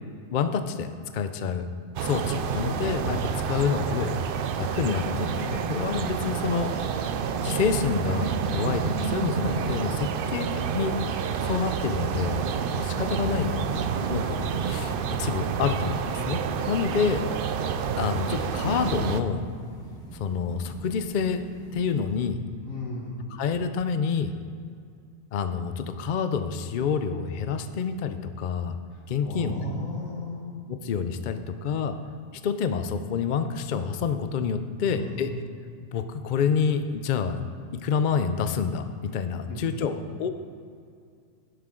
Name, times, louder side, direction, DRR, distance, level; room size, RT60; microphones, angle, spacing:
voice 1, 0.3-1.7 2.0-4.2 4.6-6.7 7.4-10.5 10.7-11.0 11.4-12.4 12.8-13.6 14.1-16.4 16.7-17.2 18.0-19.4 20.1-21.4 21.7-22.4 23.3-24.3 25.3-28.8 29.1-29.6 30.7-32.0 32.4-35.3 35.9-37.4 37.7-40.3, left 6 dB, 60° left, 9 dB, 0.5 m, -28 dB
sound 1, 2.0-19.2, right 7 dB, 65° right, 0.5 m, -29 dB
sound 2, 13.0-22.3, right 2 dB, 5° left, 1.9 m, -45 dB
voice 2, 13.7-14.2 22.7-23.2 29.2-30.5 34.8-35.3 39.5-39.6, equal, 80° left, -3 dB, 2.4 m, -36 dB
11.0 x 10.5 x 3.8 m, 2.3 s
omnidirectional pair, 1.4 m